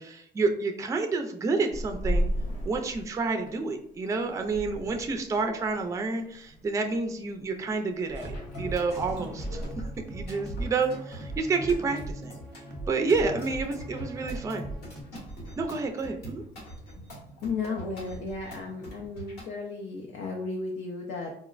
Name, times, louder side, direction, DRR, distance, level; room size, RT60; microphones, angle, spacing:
voice 1, 0.0-2.3 2.6-9.7 10.1-12.4 12.9-14.7 15.6-16.4, right 4 dB, 20° right, 4 dB, 0.3 m, -29 dB
sound 1, 1.7-9.7, equal, 50° left, 0.8 m, -36 dB
sound 2, 8.1-19.5, right 1 dB, 90° left, 1.2 m, -42 dB
sound 3, 8.2-15.0, right 1 dB, 5° left, 0.8 m, -39 dB
voice 2, 17.4-21.3, left 4 dB, 70° left, 0 dB, 0.5 m, -34 dB
3.8 x 2.0 x 2.4 m, 0.68 s
cardioid pair, 110°, 17 cm